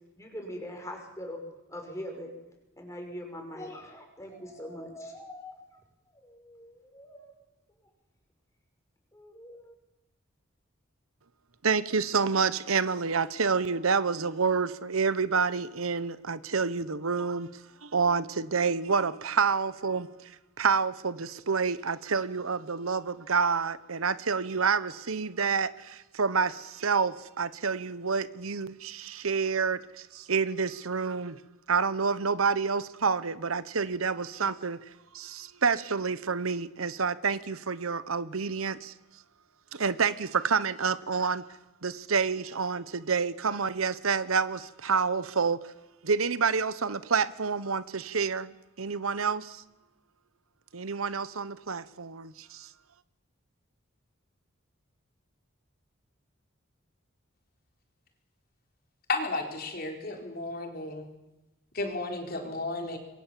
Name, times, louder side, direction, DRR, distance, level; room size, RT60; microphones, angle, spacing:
voice 1, 0.2-1.4 1.7-2.3 2.8-5.8 6.1-7.3 9.1-9.7, equal, 15° left, 2 dB, 5.9 m, -42 dB
voice 2, 11.6-20.3 20.6-31.4 31.7-34.8 35.1-38.9 39.7-41.5 41.8-45.6 46.0-49.6 50.7-52.7, right 5 dB, 85° right, 15 dB, 1.0 m, -28 dB
voice 3, 59.1-61.1 61.7-63.0, left 2 dB, 45° left, 3 dB, 4.1 m, -33 dB
27.0 x 22.5 x 7.5 m, 0.98 s
head